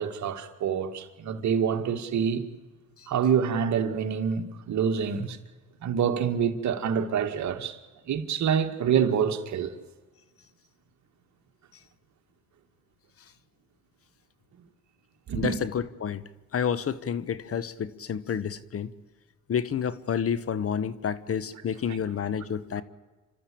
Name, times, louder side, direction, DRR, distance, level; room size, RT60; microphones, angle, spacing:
voice 1, 0.0-2.4 3.1-5.4 5.8-7.8 8.1-9.7 15.3-15.6 21.9-22.0, right 7 dB, 70° right, 2.1 m, -26 dB
voice 2, 15.3-16.2 16.5-18.9 19.5-22.8, left 7 dB, 50° left, 1.2 m, -29 dB
29.0 x 13.0 x 8.6 m
cardioid pair, 90°, 30 cm